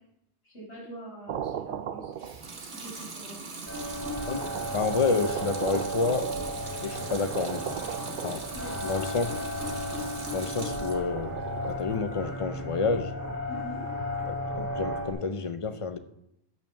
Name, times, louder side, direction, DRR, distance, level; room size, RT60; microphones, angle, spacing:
voice 1, 0.4-2.1 2.8-3.4 8.5-8.8 13.5-13.8, right 1 dB, 75° left, -7 dB, 5.0 m, -43 dB
sound 1, 1.3-2.8 3.7-3.8 4.4-8.9 10.7-11.8, right 9 dB, 60° right, 0.6 m, -38 dB
Water tap faucet / Sink (filling or washing) / Liquid, 2.1-11.1 11.5-12.2, right 4 dB, 75° right, 1.6 m, -41 dB
sound 2, 3.7-15.1, equal, 15° left, 3.0 m, -34 dB
voice 2, 4.3-6.3 6.8-7.8 8.1-8.4 8.8-9.3 10.3-11.4 11.7-13.1 14.3-16.0, left 4 dB, 35° left, 10 dB, 0.6 m, -29 dB
9.0 x 6.0 x 6.9 m, 0.79 s
omnidirectional pair, 1.1 m